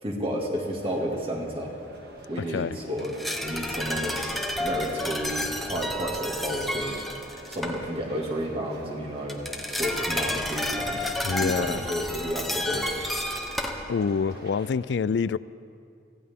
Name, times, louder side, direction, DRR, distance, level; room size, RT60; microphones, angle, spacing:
voice 1, 0.0-1.7 2.3-3.1 3.4-4.3 4.6-7.0 7.5-9.4 9.7-12.9, equal, 30° right, 2.2 m, -31 dB
sound 1, 0.8-14.7, right 1 dB, 60° right, 1.9 m, -46 dB
voice 2, 2.4-2.7 11.2-11.8 13.9-15.4, left 5 dB, 75° left, 0.4 m, -26 dB
sound 2, 3.0-7.9 9.3-14.2 14.5-14.6, left 1 dB, ahead, 0.9 m, -31 dB
24.0 x 16.5 x 3.7 m
head